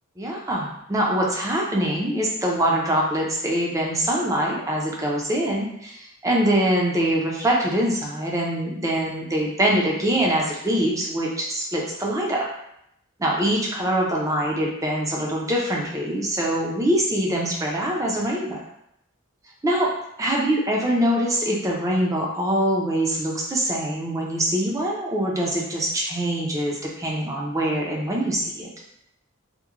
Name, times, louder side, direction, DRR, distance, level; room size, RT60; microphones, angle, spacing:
voice 1, 0.2-12.5 13.2-18.6 19.6-19.9 20.2-28.7, right 1 dB, 15° right, -2 dB, 0.4 m, -24 dB
2.9 x 2.1 x 2.4 m, 0.77 s
head